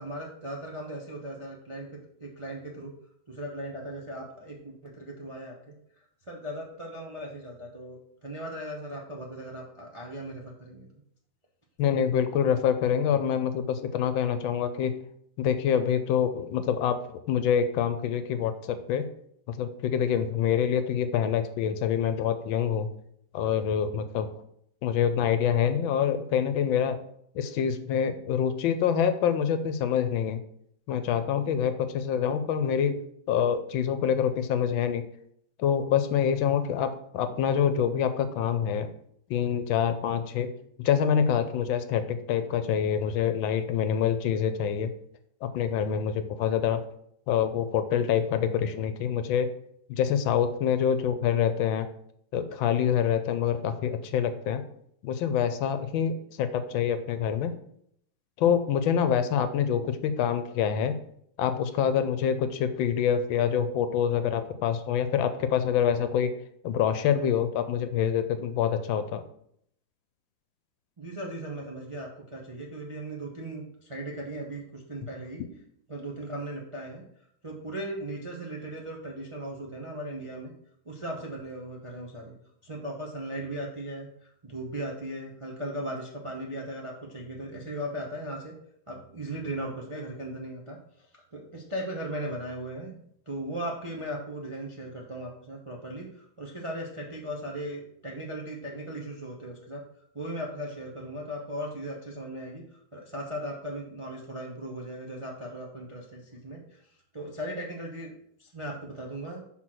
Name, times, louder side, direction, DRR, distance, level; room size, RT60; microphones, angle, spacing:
voice 1, 0.0-1.9 2.2-2.9 3.3-5.7 6.3-11.0 71.0-75.4 75.9-77.0 77.4-80.5 80.8-82.3 82.6-88.5 88.9-91.1 91.3-93.0 93.3-99.8 100.1-102.6 102.9-106.8 107.1-108.1 108.4-109.4, right 1 dB, 30° right, -2 dB, 0.6 m, -37 dB
voice 2, 11.8-14.9 15.4-17.0 17.3-19.1 19.5-22.9 23.3-24.3 24.8-27.0 27.3-30.4 30.9-33.0 33.3-35.0 35.6-38.9 39.3-40.5 40.8-44.9 45.4-46.8 47.3-49.5 49.9-51.9 52.3-54.6 55.0-57.5 58.4-61.0 61.4-66.3 66.6-69.2, left 8 dB, 75° left, 10 dB, 1.4 m, -26 dB
5.9 x 4.1 x 6.1 m, 0.70 s
omnidirectional pair, 2.2 m